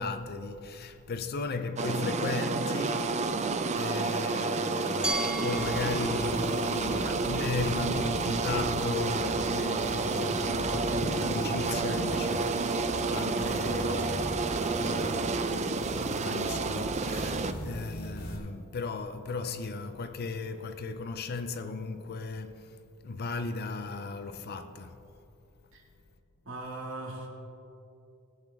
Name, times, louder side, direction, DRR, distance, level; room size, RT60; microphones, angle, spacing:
voice 1, 0.0-3.5 3.8-22.7 23.0-25.0, left 3 dB, 45° left, 0.5 m, -36 dB
sound 1, 1.8-17.5, right 3 dB, 30° right, 0.4 m, -30 dB
Glass, 5.0-7.9, right 1 dB, 5° right, 0.9 m, -37 dB
sound 2, 5.6-18.4, equal, 85° left, 2.0 m, -40 dB
voice 2, 17.4-17.7 25.7-25.8 26.4-27.3, right 2 dB, 60° right, 2.0 m, -40 dB
18.5 x 8.3 x 3.5 m
head